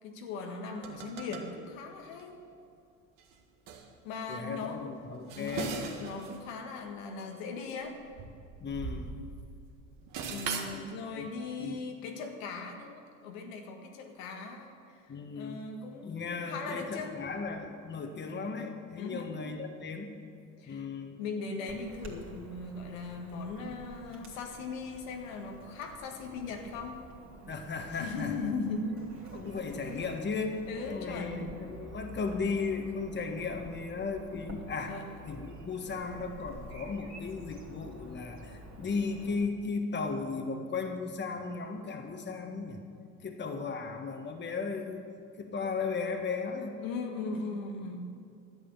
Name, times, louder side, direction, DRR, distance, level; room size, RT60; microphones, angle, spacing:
voice 1, 0.0-2.4 4.0-5.0 5.4-8.0 10.2-15.0 15.3-17.2 19.0-19.4 20.6-20.9 21.2-27.0 27.9-29.1 29.4-30.1 30.7-31.5 34.9-35.0 46.8-48.0, left 4 dB, 80° left, 2 dB, 1.7 m, -39 dB
sound 1, 0.8-1.5 2.1-2.2 3.2-3.3 3.7-3.9 5.0-6.4 6.7-6.8 7.8-9.5 9.8-10.8, right 5 dB, 55° right, 1.7 m, -39 dB
voice 2, 4.3-5.7 8.6-9.1 10.6-11.3 11.6-11.8 15.1-15.7 16.0-20.2 20.7-21.2 27.5-28.5 29.3-30.6 30.8-35.0 35.3-42.8 43.2-45.1 45.4-46.8, left 4 dB, 25° left, 4 dB, 1.5 m, -36 dB
Chirp tweet / Buzz, 21.7-39.5, right 2 dB, 30° right, 2.8 m, -49 dB
12.0 x 8.4 x 7.1 m, 2.4 s
hypercardioid pair, 85°, 39 cm